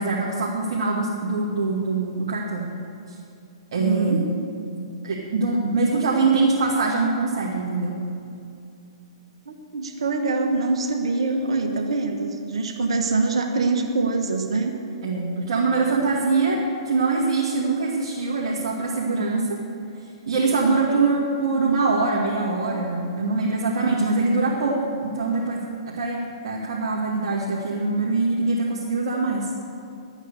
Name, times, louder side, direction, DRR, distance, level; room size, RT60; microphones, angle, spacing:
voice 1, 0.0-2.7 3.1-3.2 3.7-4.3 4.6-8.0 15.0-16.6 16.8-19.6 20.3-29.5, right 3 dB, 60° right, -5 dB, 2.1 m, -23 dB
voice 2, 3.7-4.2 9.5-14.7 20.9-21.1, right 3 dB, 75° right, 4 dB, 1.3 m, -24 dB
12.5 x 8.9 x 6.7 m, 2.6 s
hypercardioid pair, 125°, 3 cm